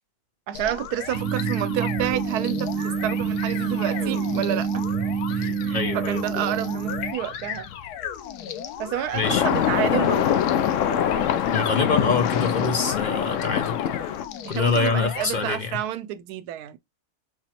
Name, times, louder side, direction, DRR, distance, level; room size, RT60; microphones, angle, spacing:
sound 1, 0.5-15.6, left 9 dB, 85° left, 1.2 m, -36 dB
voice 1, 0.5-4.8 5.3-7.7 8.8-10.5 14.4-16.8, right 12 dB, 90° right, 1.1 m, -29 dB
sound 2, 1.1-7.1, right 6 dB, 65° right, 0.9 m, -27 dB
voice 2, 5.7-6.2 9.1-9.4 11.5-14.1 14.5-15.8, left 4 dB, 50° left, 0.5 m, -25 dB
sound 3, 9.2-14.2, left 9 dB, 65° left, 0.9 m, -23 dB
4.2 x 3.0 x 4.1 m
omnidirectional pair, 1.6 m